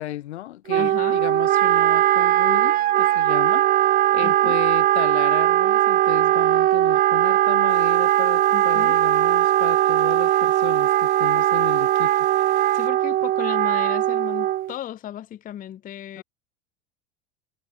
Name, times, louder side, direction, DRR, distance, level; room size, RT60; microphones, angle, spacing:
voice 1, 0.0-12.3 16.2-16.3, left 14 dB, 80° left, 1.1 m, -34 dB
voice 2, 0.7-1.3 4.2-4.6 8.5-9.0 12.7-16.2, left 11 dB, 25° left, 0.6 m, -35 dB
Wind instrument woodwind instrument, 0.7-14.7, right 13 dB, 30° right, 0.4 m, -19 dB
Bowed string instrument, 2.0-6.5, right 3 dB, 10° right, 2.4 m, -53 dB
sound 1, 7.7-12.9, right 9 dB, 85° right, 4.4 m, -49 dB
hypercardioid pair, 85°, 33 cm